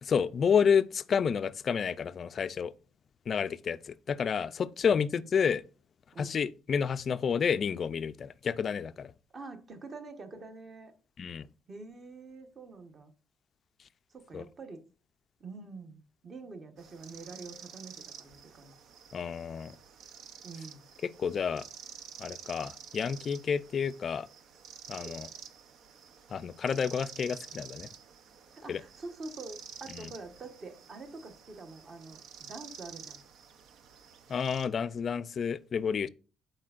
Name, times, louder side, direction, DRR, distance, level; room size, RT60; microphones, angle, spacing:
voice 1, 0.0-2.7 3.3-5.6 6.2-9.1 11.2-11.5 14.3-14.4 19.1-19.8 21.0-21.6 22.2-24.3 24.9-25.3 26.3-27.9 28.7-28.8 29.9-30.1 34.3-36.1, left 6 dB, 40° left, 0.4 m, -30 dB
voice 2, 9.3-10.9 11.7-13.1 14.1-14.8 15.4-18.7 20.4-20.8 28.6-33.2, right 3 dB, 30° right, 1.2 m, -46 dB
sound 1, 16.8-34.7, right 7 dB, 60° right, 0.7 m, -50 dB
12.0 x 4.4 x 2.5 m
cardioid pair, 140°, 0 cm